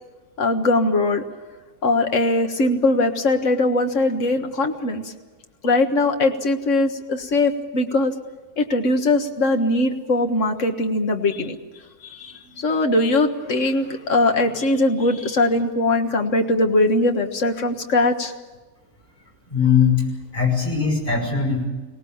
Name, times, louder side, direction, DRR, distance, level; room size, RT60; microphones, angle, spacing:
voice 1, 0.4-1.2 1.8-5.0 5.6-8.1 8.6-11.6 12.2-18.3, left 2 dB, 55° left, 5 dB, 1.9 m, -20 dB
voice 2, 19.5-20.0 20.3-21.7, left 6 dB, 35° left, -1 dB, 6.3 m, -20 dB
23.5 x 18.0 x 8.7 m, 1.3 s
omnidirectional pair, 1.6 m